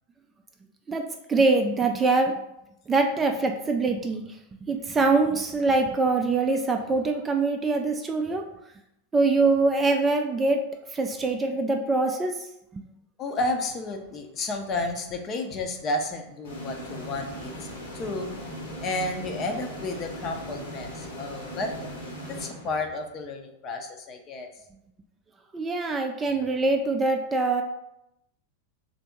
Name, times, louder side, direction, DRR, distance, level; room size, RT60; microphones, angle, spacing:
voice 1, 0.9-2.3 2.9-4.3 4.6-8.4 9.1-10.6 10.9-12.3 12.7-12.8 25.5-27.6, right 3 dB, 20° right, 4 dB, 0.4 m, -24 dB
voice 2, 13.2-17.5 17.9-18.3 18.8-21.7 22.3-24.5, left 2 dB, 30° left, 4 dB, 0.6 m, -31 dB
sound 1, 16.4-23.2, equal, 65° left, 1.1 m, -39 dB
3.4 x 2.6 x 4.5 m, 0.84 s
figure-of-eight pair, 90°, 0 cm